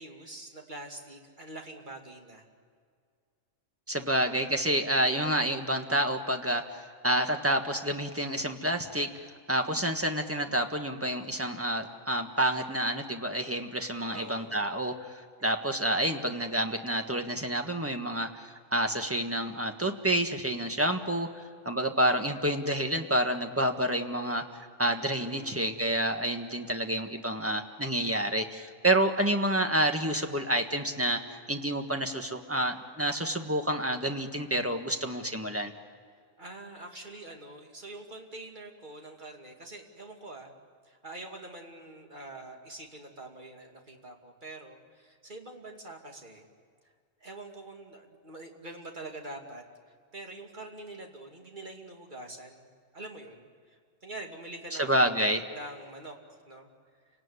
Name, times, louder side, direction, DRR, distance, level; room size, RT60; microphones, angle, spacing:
voice 1, 0.0-2.5 14.1-14.6 25.1-25.7 36.4-40.5 40.8-46.5 47.2-49.6 50.1-55.2 55.5-56.2 56.5-56.7, right 2 dB, 40° right, 2 dB, 2.8 m, -45 dB
voice 2, 3.9-24.4 24.8-31.2 31.5-35.7 54.8-55.4, right 1 dB, 10° right, 5 dB, 1.6 m, -29 dB
29.5 x 18.0 x 9.8 m, 2.1 s
omnidirectional pair, 1.3 m